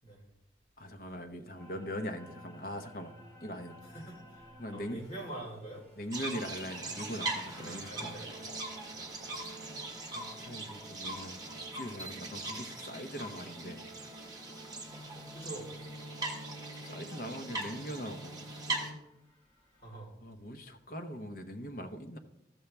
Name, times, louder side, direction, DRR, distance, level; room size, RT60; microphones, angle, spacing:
voice 1, 0.8-3.1 3.4-3.8 4.6-5.0 6.0-8.2 10.1-13.8 16.7-18.4 20.2-22.2, equal, 55° left, 6 dB, 0.9 m, -41 dB
Bana Haffar Morphagene Reel, 1.6-20.0, equal, 10° left, 2.5 m, -52 dB
voice 2, 3.8-5.8 7.5-8.5 8.9-9.1 15.3-15.7 19.8-20.1, right 1 dB, 35° left, -4 dB, 3.7 m, -45 dB
sound 1, 6.1-18.9, right 2 dB, 20° right, 1.3 m, -41 dB
14.0 x 7.0 x 3.3 m, 0.88 s
head